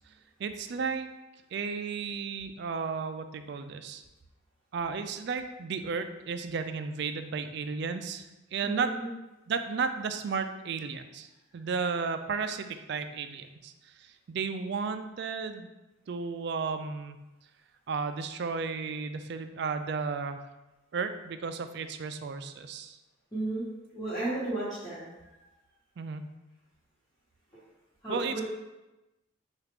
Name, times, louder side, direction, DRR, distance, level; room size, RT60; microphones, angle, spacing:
voice 1, 0.4-1.1 1.5-4.0 4.7-8.3 8.5-8.9 9.5-13.7 14.3-15.7 16.1-17.2 17.9-20.4 20.9-23.0 26.0-26.3 28.1-28.4, right 5 dB, 55° right, 9 dB, 0.3 m, -33 dB
voice 2, 8.6-9.1 23.3-23.7 23.9-25.0 28.0-28.4, right 2 dB, 15° left, -13 dB, 1.2 m, -33 dB
5.7 x 2.4 x 3.4 m, 1.0 s
head